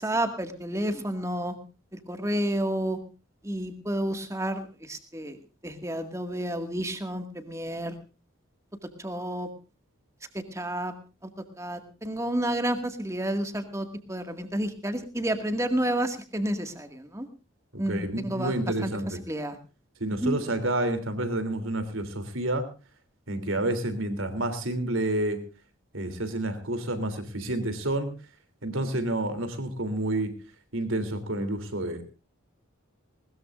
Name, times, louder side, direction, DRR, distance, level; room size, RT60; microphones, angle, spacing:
voice 1, 0.0-1.5 1.9-3.0 3.4-5.4 5.6-7.9 8.8-9.5 10.3-10.9 11.2-11.3 11.6-17.3 17.8-19.6 20.1-20.4, right 1 dB, 15° right, 6 dB, 2.0 m, -30 dB
voice 2, 17.7-19.2 20.0-22.7 23.3-25.5 25.9-28.1 28.6-30.3 30.7-32.0, right 1 dB, 75° right, 9 dB, 3.2 m, -29 dB
20.5 x 20.0 x 2.5 m, 0.32 s
head